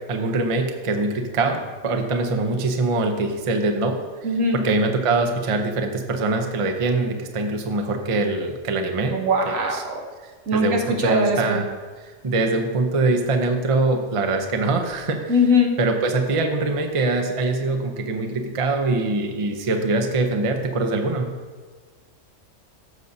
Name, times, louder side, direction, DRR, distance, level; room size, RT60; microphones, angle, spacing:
voice 1, 0.1-4.0 4.5-9.2 9.5-9.8 10.5-11.7 12.2-15.3 15.8-21.3, right 3 dB, 30° right, 4 dB, 0.6 m, -23 dB
voice 2, 4.2-4.6 9.1-10.0 10.5-11.6 15.3-15.7, left 2 dB, 80° right, 2 dB, 1.5 m, -21 dB
14.5 x 6.6 x 2.7 m, 1.4 s
omnidirectional pair, 1.4 m